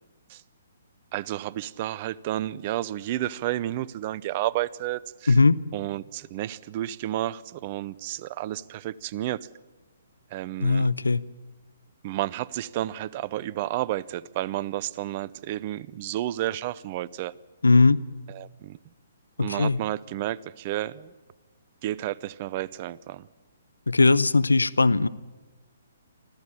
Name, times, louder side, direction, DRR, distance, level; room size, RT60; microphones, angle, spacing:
voice 1, 1.1-5.4 5.7-9.5 10.3-10.9 12.0-17.3 18.3-18.8 19.4-21.1 21.8-23.3, right 14 dB, 40° right, 0.7 m, -31 dB
voice 2, 5.3-5.6 10.6-11.2 17.6-18.0 19.4-19.8 23.9-25.1, left 3 dB, 90° left, 0.8 m, -19 dB
25.0 x 14.5 x 10.0 m
figure-of-eight pair, 135°, 0 cm